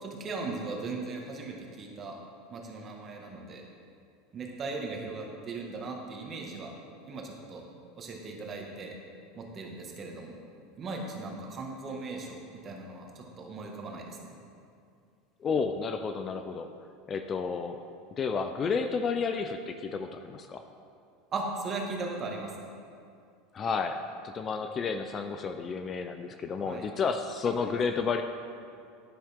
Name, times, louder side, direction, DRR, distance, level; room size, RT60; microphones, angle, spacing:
voice 1, 0.0-2.2 2.5-3.6 4.3-6.7 7.1-7.6 8.0-9.0 9.4-10.4 10.8-14.3 21.3-22.5 26.6-26.9 27.6-27.7, right 3 dB, 30° right, 0 dB, 1.8 m, -38 dB
voice 2, 15.4-16.7 17.1-17.8 18.2-20.6 23.5-24.0 24.2-28.2, left 5 dB, 30° left, 7 dB, 0.5 m, -31 dB
10.5 x 10.5 x 3.6 m, 2.4 s
supercardioid pair, 125°, 0 cm